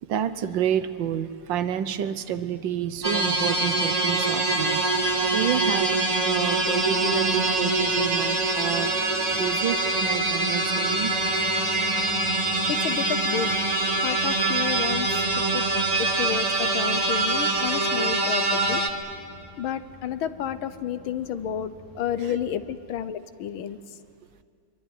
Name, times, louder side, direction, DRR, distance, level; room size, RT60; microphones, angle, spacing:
voice 1, 0.0-9.1 9.4-11.1 22.2-22.4, right 9 dB, 70° right, 12 dB, 1.5 m, -29 dB
sound 1, 2.9-22.8, left 1 dB, 55° left, 3.4 m, -45 dB
sound 2, 3.0-18.9, right 2 dB, 20° right, 1.4 m, -24 dB
voice 2, 12.7-13.5 14.0-15.7 16.0-18.8 19.6-24.0, left 9 dB, 80° left, 12 dB, 1.7 m, -31 dB
24.5 x 23.5 x 9.4 m, 2.4 s
omnidirectional pair, 2.2 m